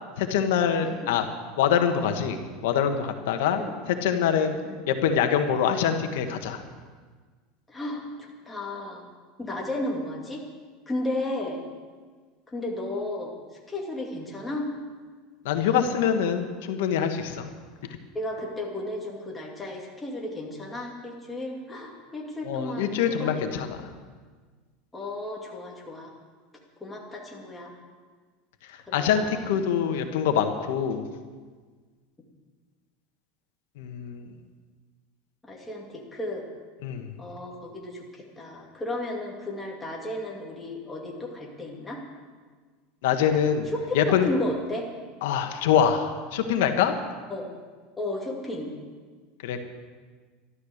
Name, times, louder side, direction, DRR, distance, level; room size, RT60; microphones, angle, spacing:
voice 1, 0.2-1.3 1.6-2.4 2.6-3.6 3.9-4.6 4.9-6.6 15.4-17.5 22.4-23.7 28.9-31.0 33.8-34.2 36.8-37.1 43.0-43.7 43.9-44.3 45.2-47.0 49.4-49.6, left 8 dB, 80° left, 6 dB, 1.5 m, -24 dB
voice 2, 7.7-9.0 9.4-10.4 10.9-11.6 12.5-13.4 13.7-14.7 18.1-23.7 24.9-26.1 26.8-27.7 28.9-29.6 35.4-36.5 37.2-42.0 43.7-44.9 47.3-47.5 48.0-48.7, left 1 dB, 10° left, -2 dB, 2.6 m, -34 dB
13.0 x 12.5 x 6.6 m, 1.5 s
supercardioid pair, 140°, 0 cm